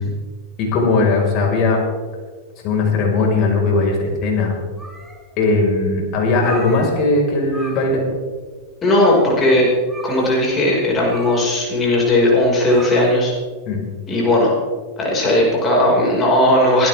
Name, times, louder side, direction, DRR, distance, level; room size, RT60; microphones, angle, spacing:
voice 1, 0.6-1.8 2.6-4.5 5.4-8.1 13.7-13.8, left 3 dB, 45° left, 0 dB, 5.6 m, -18 dB
sound 1, 4.7-5.5 5.8-5.9 6.3-7.2 7.5-8.1 8.4-8.5 8.9-9.4 9.9-13.4, right 2 dB, 10° right, 2.9 m, -37 dB
voice 2, 8.8-9.7 10.0-13.3 14.1-14.5 15.0-16.9, left 1 dB, 25° left, -3 dB, 5.8 m, -16 dB
23.5 x 12.5 x 3.7 m, 1.5 s
hypercardioid pair, 95°, 0 cm